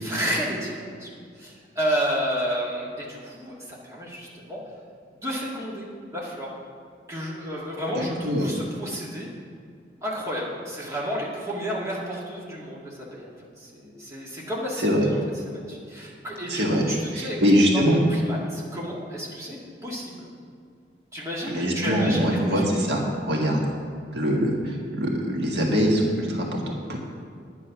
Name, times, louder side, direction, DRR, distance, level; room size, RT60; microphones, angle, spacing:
voice 1, 0.0-1.1 1.4-4.6 5.2-6.6 7.1-9.3 10.0-13.3 13.6-15.2 15.4-17.4 17.7-19.6 19.8-20.3 21.1-22.6, equal, 15° right, -5 dB, 2.3 m, -31 dB
voice 2, 8.0-8.5 14.8-15.1 16.5-16.8 17.1-18.0 21.5-23.6 24.1-27.0, equal, 70° right, -1 dB, 1.8 m, -23 dB
10.5 x 9.9 x 6.0 m, 2.2 s
head